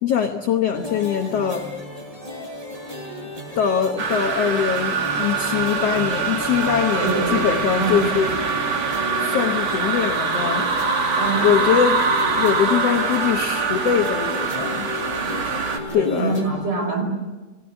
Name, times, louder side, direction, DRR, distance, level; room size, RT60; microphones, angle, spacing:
voice 1, 0.0-1.7 3.5-8.3 9.2-10.7 11.4-14.9 15.9-16.5, left 8 dB, 80° left, 6 dB, 1.4 m, -22 dB
sound 1, 0.7-16.5, left 2 dB, 10° right, 7.9 m, -33 dB
sound 2, 4.0-15.8, right 4 dB, 45° right, 2.9 m, -24 dB
voice 2, 7.0-7.4 7.8-8.0 11.2-11.5 16.0-17.0, right 3 dB, 75° right, 5 dB, 7.0 m, -24 dB
27.5 x 20.5 x 8.0 m, 1.2 s
omnidirectional pair, 4.3 m